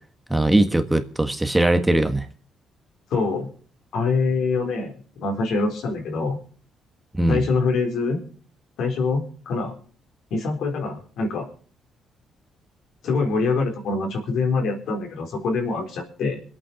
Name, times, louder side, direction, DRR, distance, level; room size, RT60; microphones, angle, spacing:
voice 1, 0.3-2.2 7.2-7.4, right 1 dB, 10° right, 7 dB, 1.6 m, -20 dB
voice 2, 3.1-3.5 3.9-6.4 7.3-8.2 8.8-9.8 10.3-11.5 13.0-16.4, left 4 dB, 75° left, 2 dB, 4.1 m, -24 dB
23.0 x 8.8 x 5.1 m, 0.42 s
cardioid pair, 90°, 0 cm